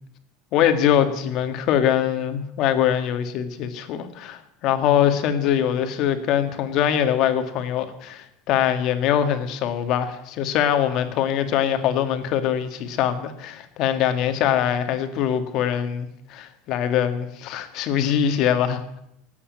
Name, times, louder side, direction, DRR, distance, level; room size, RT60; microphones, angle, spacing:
voice 1, 0.5-19.0, left 9 dB, 50° left, 8 dB, 1.8 m, -23 dB
18.0 x 8.5 x 9.4 m, 0.79 s
supercardioid pair, 150°, 0 cm